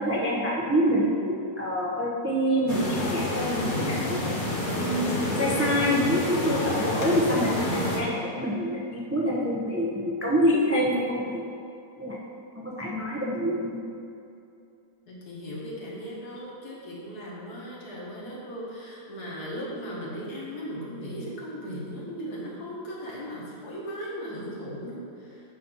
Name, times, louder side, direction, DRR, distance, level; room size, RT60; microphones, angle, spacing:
voice 1, 0.0-4.3 4.8-5.0 5.4-11.4 12.0-12.2 12.5-13.9, equal, 20° right, -5 dB, 0.4 m, -26 dB
sound 1, 2.7-8.0, left 1 dB, 35° left, 1.0 m, -28 dB
voice 2, 15.1-25.4, equal, 70° left, -5 dB, 1.9 m, -37 dB
8.2 x 2.8 x 6.0 m, 2.6 s
omnidirectional pair, 1.8 m